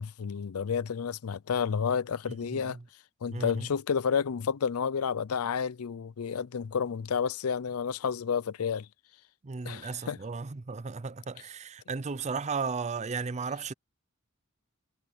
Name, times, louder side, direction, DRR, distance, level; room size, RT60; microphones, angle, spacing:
voice 1, 0.0-2.8 3.2-8.9 9.6-10.2, left 6 dB, 90° left, 0.5 m, -30 dB
voice 2, 3.3-3.7 9.4-13.7, right 5 dB, 30° right, 0.5 m, -35 dB
head